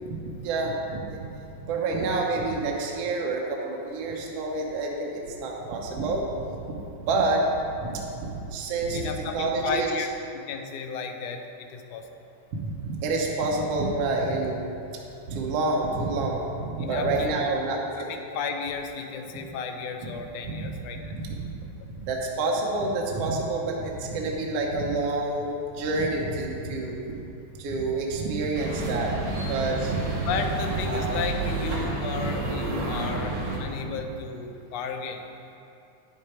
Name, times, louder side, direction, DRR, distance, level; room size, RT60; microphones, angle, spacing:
voice 1, 0.1-1.3 1.6-6.7 7.1-7.5 7.8-9.9 12.5-14.7 15.2-18.1 20.0-20.1 20.4-20.6 20.9-21.5 22.0-27.2 27.6-30.0 30.9-31.2 33.8-33.9, right 2 dB, 65° right, -1 dB, 1.8 m, -28 dB
voice 2, 8.9-10.1 10.5-12.1 16.8-17.4 17.7-17.8 18.1-21.1 30.3-35.2, left 5 dB, 75° left, 4 dB, 1.6 m, -33 dB
sound 1, 28.5-33.6, right 2 dB, 40° right, 2.0 m, -29 dB
9.5 x 8.3 x 4.4 m, 2.7 s
omnidirectional pair, 3.5 m